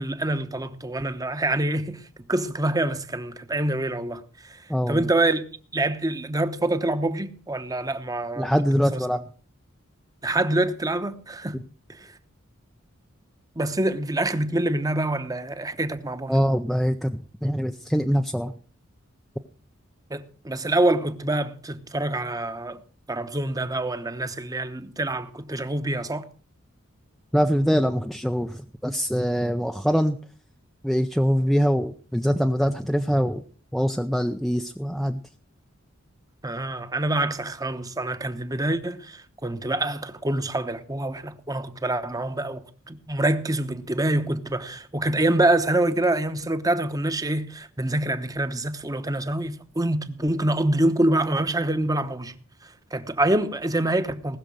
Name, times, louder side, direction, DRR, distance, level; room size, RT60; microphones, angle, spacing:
voice 1, 0.0-5.5 5.7-9.0 10.2-11.6 11.9-12.1 13.6-16.5 20.1-22.8 23.1-26.2 36.4-52.4 52.6-54.4, right 1 dB, 20° right, 1.0 m, -26 dB
voice 2, 4.7-5.1 8.4-9.2 16.3-18.5 27.3-30.2 30.8-33.4 33.7-35.2, equal, ahead, 0.5 m, -23 dB
19.5 x 6.6 x 6.3 m
head